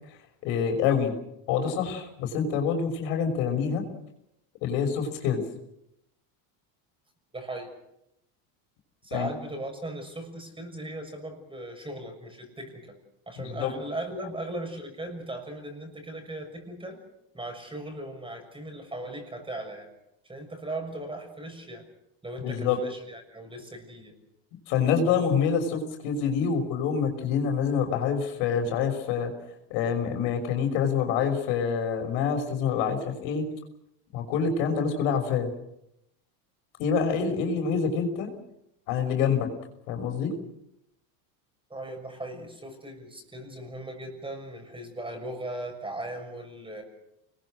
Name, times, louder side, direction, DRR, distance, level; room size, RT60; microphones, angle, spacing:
voice 1, 0.4-1.1 1.5-3.8 4.6-5.4 9.1-9.3 13.4-13.7 22.4-22.8 24.7-29.3 29.7-33.5 34.1-35.5 36.8-38.3 38.9-39.5 39.9-40.3, left 6 dB, 70° left, 4 dB, 6.2 m, -26 dB
voice 2, 7.3-7.7 9.0-13.0 13.3-17.0 17.3-19.9 20.2-21.9 22.2-24.1 41.7-46.8, right 1 dB, 10° right, 5 dB, 6.5 m, -38 dB
28.5 x 21.5 x 6.5 m, 0.82 s
supercardioid pair, 135°, 49 cm